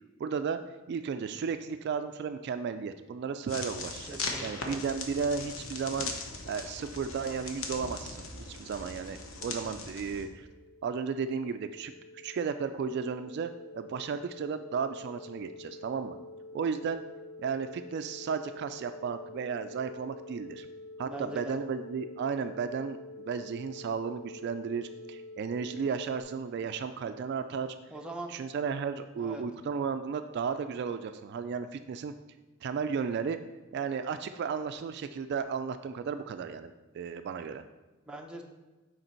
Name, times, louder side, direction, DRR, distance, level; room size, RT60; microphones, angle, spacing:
voice 1, 0.2-0.6 0.9-6.1 6.5-10.5 10.8-11.9 12.2-16.2 16.5-17.0 17.4-20.7 21.0-27.7 28.3-32.1 32.6-33.4 33.7-37.6, right 6 dB, 55° right, 10 dB, 0.3 m, -34 dB
sound 1, 3.5-10.2, left 3 dB, 85° left, 1.0 m, -39 dB
voice 2, 4.1-4.9 21.0-21.6 27.9-28.3 29.2-29.4 38.1-38.4, right 1 dB, 5° right, 1 dB, 0.7 m, -41 dB
sound 2, 9.3-26.2, left 2 dB, 60° left, 1.1 m, -48 dB
6.6 x 4.5 x 4.4 m, 1.2 s
head